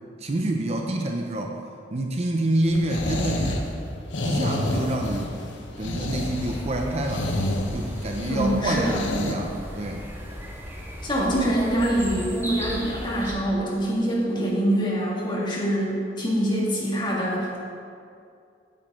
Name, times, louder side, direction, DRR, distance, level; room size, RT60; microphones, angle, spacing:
voice 1, 0.2-1.5 1.9-3.7 4.2-5.3 5.8-7.3 7.7-10.0, right 1 dB, 35° right, 2 dB, 0.6 m, -27 dB
sound 1, 2.7-9.3, left 1 dB, 90° left, 0.8 m, -29 dB
sound 2, 6.2-13.3, equal, 10° right, 1.1 m, -36 dB
voice 2, 8.3-9.0 11.0-17.6, right 1 dB, 25° left, -5 dB, 1.9 m, -24 dB
8.9 x 7.7 x 3.7 m, 2.4 s
head